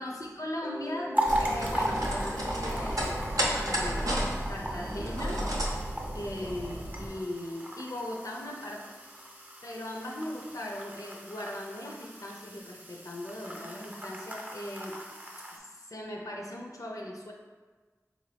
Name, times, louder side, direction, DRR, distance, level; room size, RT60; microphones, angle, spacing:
voice 1, 0.0-4.2 4.5-5.5 6.1-9.0 9.6-15.0 15.5-17.3, left 1 dB, 75° left, 0 dB, 0.5 m, -39 dB
Mallet percussion, 0.6-9.2, left 1 dB, 15° left, 0.5 m, -47 dB
sound 1, 1.1-15.6, right 1 dB, 25° right, 0.6 m, -38 dB
sound 2, 1.2-7.1, right 1 dB, 80° right, 0.6 m, -32 dB
3.9 x 2.5 x 3.3 m, 1.4 s
wide cardioid pair, 45°, 6 cm